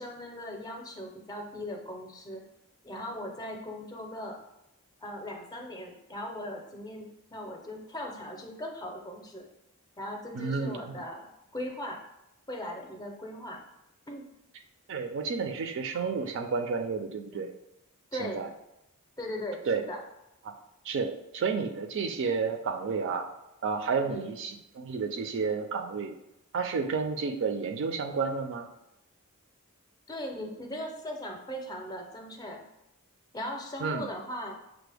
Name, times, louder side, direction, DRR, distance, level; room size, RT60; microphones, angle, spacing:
voice 1, 0.0-2.4 2.8-4.4 5.0-9.5 10.0-12.0 12.5-13.6 14.1-14.2 17.3-17.5 18.1-18.5 19.2-20.0 24.0-24.3 30.1-32.6 33.3-34.5, left 1 dB, 15° left, 1 dB, 0.5 m, -39 dB
voice 2, 10.4-11.0 14.9-17.5 18.2-18.5 19.7-19.8 20.9-23.3 23.6-26.2 26.5-28.7 33.8-34.1, right 5 dB, 60° right, 6 dB, 0.4 m, -31 dB
5.8 x 2.0 x 3.3 m, 0.87 s
head